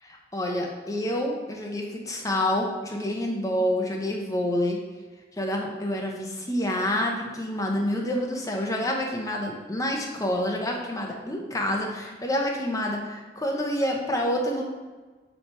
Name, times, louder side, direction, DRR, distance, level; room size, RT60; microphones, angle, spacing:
voice 1, 0.3-4.8 5.4-14.6, left 1 dB, 20° left, 1 dB, 0.8 m, -28 dB
7.1 x 3.3 x 4.5 m, 1.3 s
head